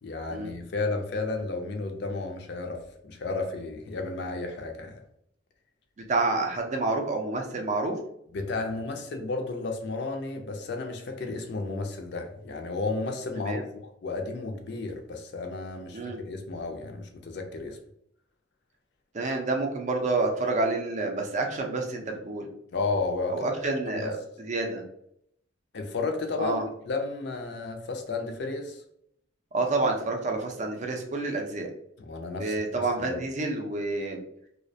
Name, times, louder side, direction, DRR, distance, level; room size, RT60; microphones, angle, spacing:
voice 1, 0.0-5.0 8.3-17.8 22.7-23.5 23.9-24.1 25.7-26.6 26.9-28.8 32.0-33.2, left 3 dB, 60° left, 4 dB, 0.4 m, -33 dB
voice 2, 6.1-8.0 13.4-13.7 15.9-16.2 19.1-22.5 23.3-24.8 26.4-26.6 29.5-31.7 32.3-34.2, right 3 dB, 35° right, 3 dB, 0.4 m, -28 dB
2.3 x 2.1 x 2.6 m, 0.73 s
head